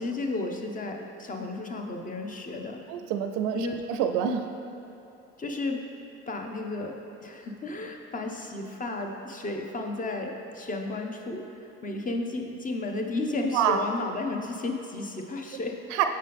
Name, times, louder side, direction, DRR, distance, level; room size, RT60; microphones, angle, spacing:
voice 1, 0.0-2.8 3.5-3.8 5.4-5.8 6.3-15.8, left 2 dB, 25° left, 3 dB, 0.8 m, -33 dB
voice 2, 2.9-4.5 13.5-13.8 15.9-16.0, right 9 dB, 80° right, 7 dB, 0.5 m, -26 dB
7.6 x 5.4 x 3.4 m, 2.9 s
supercardioid pair, 80°, 31 cm